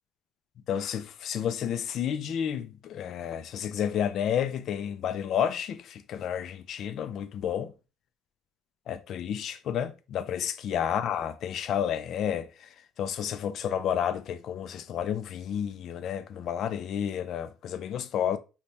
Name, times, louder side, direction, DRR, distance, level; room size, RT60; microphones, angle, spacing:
voice 1, 0.7-7.7 8.9-12.5 13.0-18.4, left 9 dB, 50° left, 0.3 m, -31 dB
2.8 x 2.2 x 3.2 m
cardioid pair, 155°, 0 cm